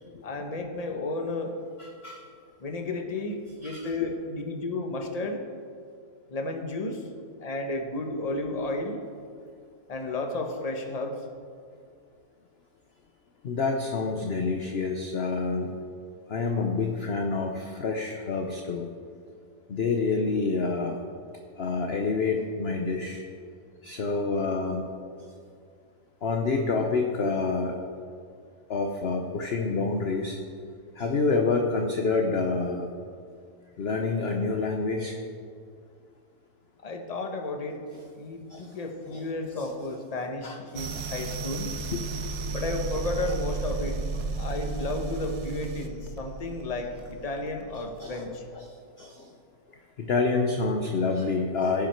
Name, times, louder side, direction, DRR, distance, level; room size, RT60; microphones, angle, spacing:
voice 1, 0.2-1.5 2.6-5.4 6.3-7.0 7.4-9.0 9.9-11.1 36.8-37.8 38.2-41.7 42.5-44.0 44.3-48.4, left 2 dB, 25° left, 4 dB, 1.0 m, -33 dB
voice 2, 1.8-2.2 3.6-4.1 13.4-15.7 16.3-18.9 19.7-21.0 21.6-23.2 23.8-24.9 26.2-27.7 28.7-30.4 31.0-32.9 33.8-35.2 38.5-38.8 39.1-39.2 40.4-40.6 41.9-42.5 48.0-48.2 48.5-49.3 50.0-51.9, left 4 dB, 50° left, 2 dB, 0.9 m, -28 dB
sound 1, 40.8-48.3, right 3 dB, 85° right, 1.4 m, -33 dB
16.5 x 7.3 x 4.5 m, 2.2 s
omnidirectional pair, 1.7 m